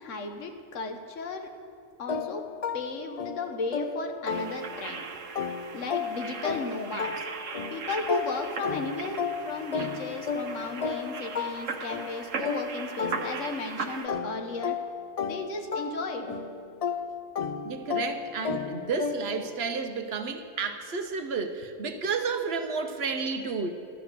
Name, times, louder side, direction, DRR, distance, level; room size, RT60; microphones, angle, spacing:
voice 1, 0.0-1.5 2.0-2.4 2.7-5.0 5.7-7.2 7.7-14.7 15.3-16.3, left 3 dB, 75° left, 5 dB, 1.3 m, -35 dB
sound 1, 2.1-5.0 5.4-13.7 14.1-19.5, left 5 dB, 45° left, 0.5 m, -34 dB
sound 2, 4.3-14.1, right 5 dB, 80° right, 1.2 m, -38 dB
voice 2, 17.6-23.7, right 5 dB, 60° right, 7 dB, 0.9 m, -31 dB
12.5 x 9.8 x 6.6 m, 2.6 s
omnidirectional pair, 1.3 m